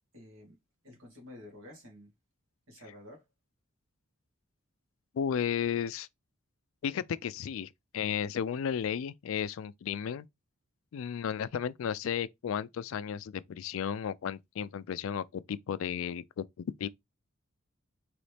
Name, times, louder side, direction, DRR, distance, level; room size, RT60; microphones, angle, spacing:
voice 1, 0.1-0.6 0.8-2.1 2.7-3.2, left 1 dB, 75° right, 2.1 m, -50 dB
voice 2, 5.1-6.1 6.8-10.3 10.9-16.9, left 8 dB, 75° left, 0.3 m, -34 dB
4.0 x 3.1 x 3.3 m
head